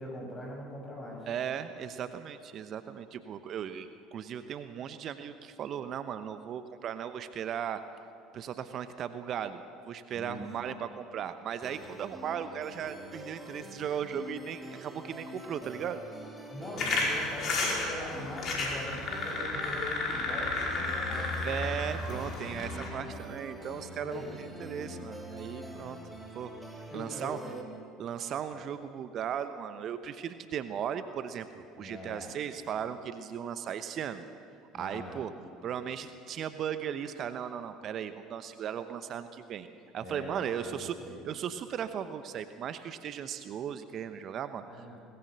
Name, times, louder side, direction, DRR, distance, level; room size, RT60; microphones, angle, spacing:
voice 1, 0.0-1.3 10.1-10.4 16.5-21.5 22.6-23.1 23.9-24.3 24.7-25.0 26.9-27.6 28.5-28.6 31.7-32.3 34.7-35.2 40.0-41.2 44.6-45.0, left 1 dB, 25° left, -1 dB, 7.7 m, -42 dB
voice 2, 1.3-7.8 8.3-16.0 21.4-26.5 26.9-27.4 28.0-34.3 34.7-35.3 35.6-39.7 39.9-40.9 41.2-44.6, right 8 dB, 45° right, 11 dB, 1.0 m, -37 dB
sound 1, 11.6-27.6, equal, 10° right, 4.5 m, -45 dB
sound 2, 16.8-22.9, left 3 dB, 50° left, 5.1 m, -32 dB
21.5 x 20.5 x 6.7 m, 2.5 s
hypercardioid pair, 65°, 0 cm